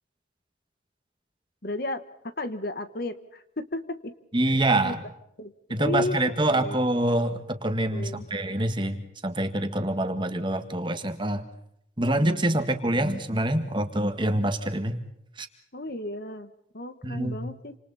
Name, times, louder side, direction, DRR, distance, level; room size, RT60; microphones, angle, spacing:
voice 1, 1.6-4.1 4.5-4.9 5.4-5.5 5.8-6.2 6.5-6.8 7.9-8.3 15.7-17.8, left 2 dB, 55° left, 11 dB, 1.5 m, -34 dB
voice 2, 4.3-5.0 5.7-11.4 12.0-15.0 15.4-15.5 17.0-17.4, right 1 dB, 25° right, 7 dB, 1.8 m, -26 dB
28.5 x 27.0 x 4.3 m, 0.77 s
head